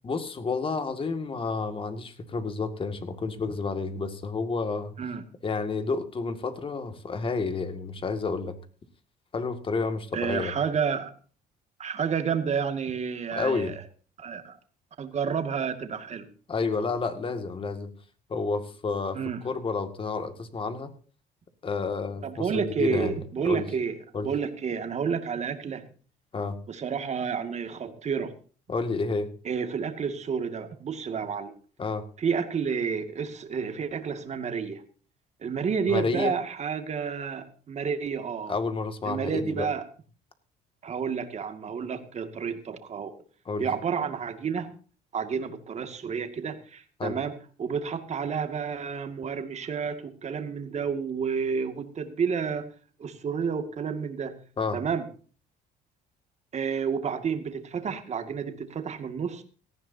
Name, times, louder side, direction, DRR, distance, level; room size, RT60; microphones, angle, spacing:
voice 1, 0.0-4.9 5.4-8.6 9.3-10.5 13.3-13.7 16.5-17.9 18.3-20.9 21.6-23.1 23.4-23.7 24.1-24.3 26.3-26.6 28.7-29.3 31.8-32.0 35.9-36.3 38.5-39.7 43.5-43.7 47.0-47.2 54.6-54.8, left 4 dB, 30° left, 8 dB, 2.1 m, -30 dB
voice 2, 10.1-11.1 11.8-13.7 14.2-14.6 15.0-16.3 19.1-19.4 22.2-24.0 24.2-25.8 26.7-28.3 29.4-31.5 32.2-34.8 35.4-38.6 39.1-39.9 40.8-43.1 43.6-44.7 45.1-52.7 53.0-54.4 54.7-55.0 56.5-59.4, right 6 dB, 40° right, 8 dB, 2.2 m, -30 dB
18.0 x 14.5 x 2.8 m, 0.40 s
cardioid pair, 110°, 17 cm